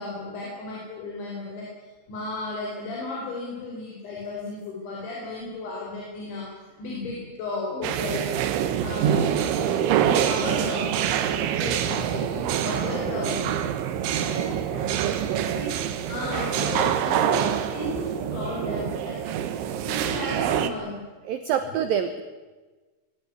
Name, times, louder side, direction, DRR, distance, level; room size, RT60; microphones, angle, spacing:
voice 1, 0.0-1.7 2.1-6.5 6.8-8.3 8.8-10.9 11.6-13.6 13.9-14.9 15.6-15.7 16.1-19.2 19.8-21.0, left 2 dB, 75° left, -3 dB, 7.2 m, -34 dB
sound 1, 7.8-20.7, right 9 dB, 90° right, 3.8 m, -26 dB
voice 2, 15.0-15.6 21.3-22.2, right 8 dB, 70° right, 8 dB, 2.3 m, -27 dB
22.0 x 17.5 x 9.8 m, 1.3 s
omnidirectional pair, 5.3 m